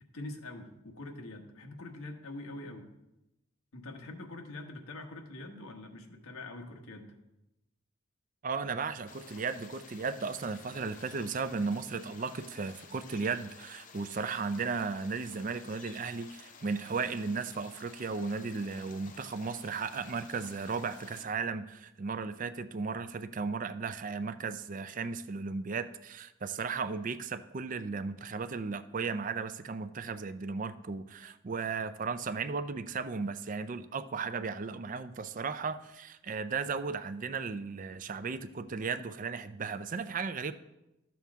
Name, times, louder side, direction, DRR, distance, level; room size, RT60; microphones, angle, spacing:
voice 1, 0.1-2.9 3.7-7.1, left 2 dB, 85° left, 3 dB, 1.3 m, -44 dB
voice 2, 8.4-40.5, right 4 dB, 40° right, 12 dB, 0.4 m, -35 dB
sound 1, 9.1-21.3, left 5 dB, 35° left, 0.6 m, -53 dB
12.5 x 7.1 x 3.5 m, 0.94 s
head